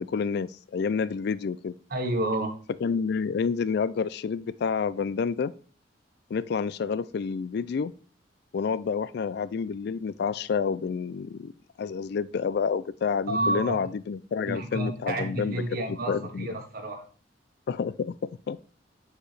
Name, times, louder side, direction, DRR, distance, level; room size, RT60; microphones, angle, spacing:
voice 1, 0.0-1.7 2.8-5.5 6.3-7.9 8.5-11.5 11.8-15.6 15.9-16.5 17.7-18.6, left 5 dB, 60° left, 16 dB, 0.3 m, -29 dB
voice 2, 1.9-2.5 13.3-13.8 14.5-17.0, right 1 dB, 50° right, 2 dB, 1.3 m, -30 dB
8.9 x 4.8 x 3.3 m, 0.40 s
head